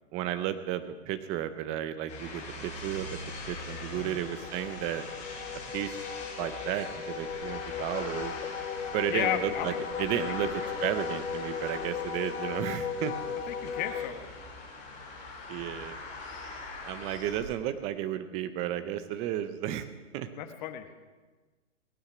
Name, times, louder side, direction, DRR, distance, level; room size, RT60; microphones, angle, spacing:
voice 1, 0.1-3.2 3.5-5.0 5.7-5.9 6.4-8.3 8.9-9.7 10.0-13.1 15.5-16.0 16.8-19.9 20.1-20.3, right 11 dB, 15° right, 11 dB, 0.6 m, -33 dB
sound 1, 2.1-17.4, left 2 dB, 20° left, 4.6 m, -42 dB
Wind instrument woodwind instrument, 3.1-14.1, left 6 dB, 85° left, 1.7 m, -37 dB
voice 2, 9.1-9.8 10.6-10.7 13.5-14.3 20.3-20.8, left 11 dB, 35° left, 8 dB, 1.3 m, -34 dB
18.0 x 9.8 x 6.1 m, 1.3 s
hypercardioid pair, 150°, 38 cm